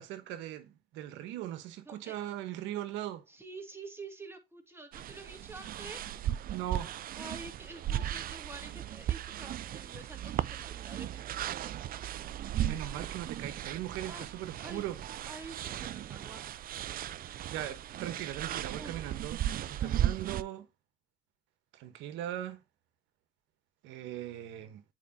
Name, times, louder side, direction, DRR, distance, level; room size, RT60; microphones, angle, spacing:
voice 1, 0.0-3.2 6.5-6.9 12.4-15.0 17.5-19.4 19.7-20.7 21.7-22.6 23.8-24.8, right 12 dB, 85° right, 1.1 m, -39 dB
voice 2, 1.9-2.2 3.3-6.0 7.1-11.6 14.0-14.9 15.3-16.4 17.2-17.4 18.8-19.0 19.8-20.2, right 3 dB, 15° right, 1.9 m, -48 dB
sound 1, 4.9-20.4, right 11 dB, 50° right, 0.4 m, -36 dB
8.5 x 4.6 x 2.7 m
supercardioid pair, 80°, 19 cm